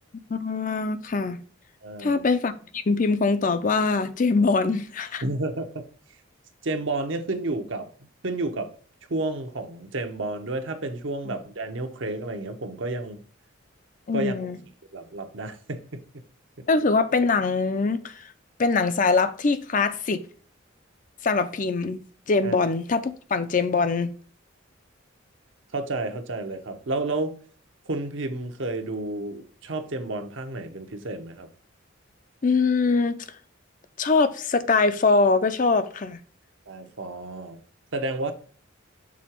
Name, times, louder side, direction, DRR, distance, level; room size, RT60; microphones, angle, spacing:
voice 1, 0.3-1.4 2.0-5.2 14.1-14.6 16.7-18.3 18.6-20.2 21.2-22.0 22.3-24.1 32.4-33.2 34.0-36.2, left 4 dB, 40° left, 0.5 m, -23 dB
voice 2, 1.8-2.3 5.2-5.7 6.6-7.9 8.2-8.7 9.1-13.2 14.1-14.5 14.9-16.0 16.6-16.7 22.4-22.6 25.7-27.3 27.9-31.5 36.7-37.6 37.9-38.3, right 2 dB, 70° right, 0.9 m, -31 dB
6.2 x 3.9 x 4.4 m
head